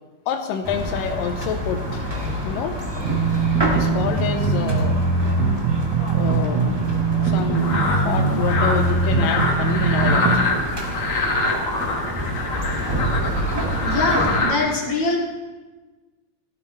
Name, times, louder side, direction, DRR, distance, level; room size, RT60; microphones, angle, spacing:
voice 1, 0.3-2.1 2.4-2.8 3.6-5.1 6.1-6.7 7.2-10.5 12.4-12.5, left 7 dB, 80° left, 5 dB, 2.4 m, -28 dB
sound 1, 0.6-14.4, equal, 15° right, 1.1 m, -28 dB
sound 2, 3.0-10.4, right 4 dB, 55° right, 2.4 m, -21 dB
sound 3, 7.5-14.6, left 2 dB, 45° left, 2.4 m, -25 dB
voice 2, 13.8-15.2, left 2 dB, 25° left, -4 dB, 2.5 m, -23 dB
16.5 x 13.0 x 3.3 m, 1.2 s
omnidirectional pair, 3.9 m